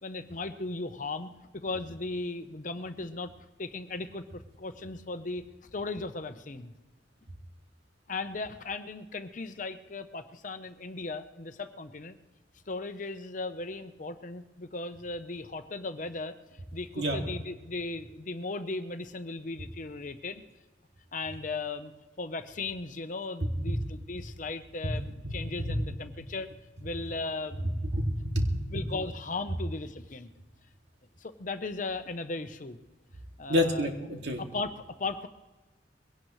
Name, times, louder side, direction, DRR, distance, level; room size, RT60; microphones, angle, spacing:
voice 1, 0.0-3.3 3.6-5.4 5.7-6.7 8.1-12.2 12.7-20.4 21.1-21.9 22.2-26.5 26.8-27.8 28.7-30.3 31.2-32.8 33.4-33.9 34.4-35.3, left 3 dB, 45° left, 9 dB, 0.8 m, -37 dB
voice 2, 25.5-25.8 27.9-28.5 33.5-34.4, left 1 dB, 70° right, 2 dB, 2.3 m, -28 dB
22.0 x 17.5 x 3.2 m, 1.2 s
head